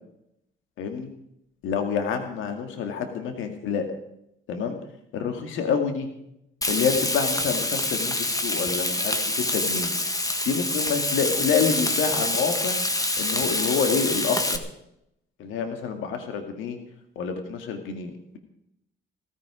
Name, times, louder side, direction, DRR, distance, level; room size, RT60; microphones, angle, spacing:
voice 1, 0.8-1.1 1.6-3.9 4.5-4.8 5.1-6.1 6.7-9.9 10.5-12.8 13.2-14.6 15.4-16.8 17.2-18.4, left 6 dB, 90° left, 6 dB, 2.1 m, -27 dB
Frying (food), 6.6-14.6, left 2 dB, 15° left, 1.8 m, -26 dB
16.5 x 15.0 x 5.0 m, 0.78 s
cardioid pair, 90°, 20 cm